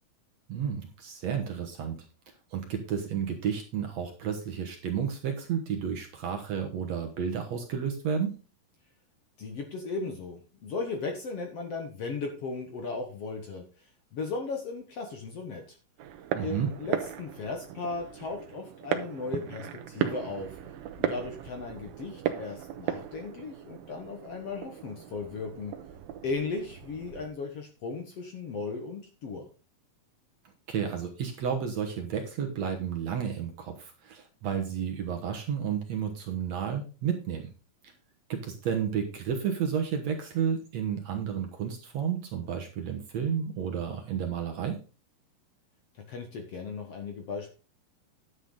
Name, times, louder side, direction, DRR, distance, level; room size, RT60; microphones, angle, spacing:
voice 1, 0.5-2.0 2.5-8.4 16.4-16.7 30.7-37.5 38.3-44.8, right 7 dB, 60° right, 3 dB, 2.1 m, -31 dB
voice 2, 9.4-13.9 14.1-15.8 16.4-20.6 21.0-25.7 26.2-29.5 46.1-47.5, left 4 dB, 55° left, 4 dB, 1.9 m, -36 dB
sound 1, 16.0-27.3, right 10 dB, 85° right, 2.7 m, -36 dB
11.0 x 8.0 x 3.8 m, 0.34 s
omnidirectional pair, 4.1 m